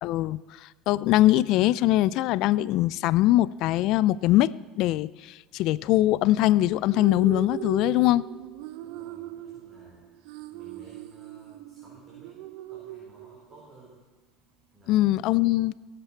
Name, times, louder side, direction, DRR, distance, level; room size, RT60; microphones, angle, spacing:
voice 1, 0.0-8.2 14.9-15.7, left 15 dB, 65° left, 20 dB, 0.3 m, -22 dB
sound 1, 6.7-13.7, right 12 dB, 75° right, 0.6 m, -40 dB
voice 2, 8.8-10.1 10.5-12.3 12.7-14.0 14.7-15.1, right 2 dB, 20° right, -7 dB, 4.7 m, -54 dB
18.5 x 7.9 x 4.5 m, 1.2 s
supercardioid pair, 105°, 0 cm